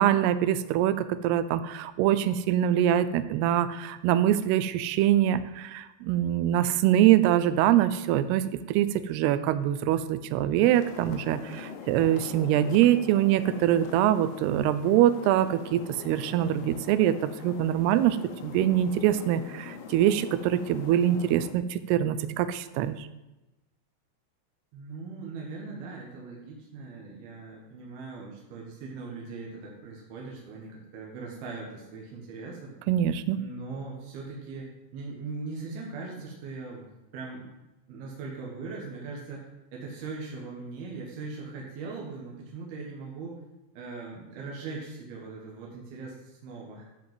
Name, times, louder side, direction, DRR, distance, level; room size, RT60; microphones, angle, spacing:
voice 1, 0.0-18.2 18.4-23.1 32.9-33.4, right 11 dB, 80° right, 12 dB, 2.4 m, -24 dB
sound 1, 10.6-21.5, left 7 dB, 75° left, 2.9 m, -43 dB
voice 2, 24.7-32.7 33.4-37.5 37.9-43.4 43.7-46.9, right 4 dB, 65° right, -3 dB, 3.3 m, -40 dB
13.5 x 5.1 x 7.7 m, 1.0 s
omnidirectional pair, 5.2 m